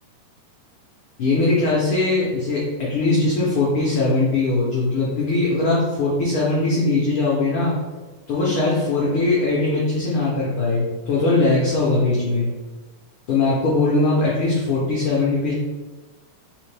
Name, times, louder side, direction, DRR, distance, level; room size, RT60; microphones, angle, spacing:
voice 1, 1.2-7.8 8.3-12.5 13.3-15.5, left 3 dB, 75° left, -6 dB, 1.2 m, -20 dB
4.3 x 3.6 x 3.3 m, 1.2 s
omnidirectional pair, 3.5 m